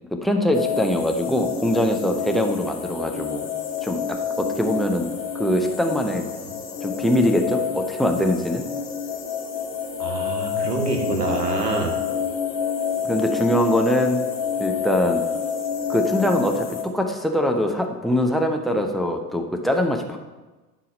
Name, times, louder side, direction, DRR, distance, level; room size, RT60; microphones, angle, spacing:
voice 1, 0.1-3.4 3.8-5.1 5.3-6.2 6.8-8.6 13.1-14.2 14.6-15.2 15.9-20.2, left 1 dB, ahead, 3 dB, 0.8 m, -22 dB
sound 1, 0.5-16.8, left 7 dB, 60° left, 2.0 m, -28 dB
voice 2, 10.0-12.0, right 2 dB, 85° right, 3 dB, 1.4 m, -26 dB
11.5 x 4.9 x 5.1 m, 1.2 s
figure-of-eight pair, 80°, 47 cm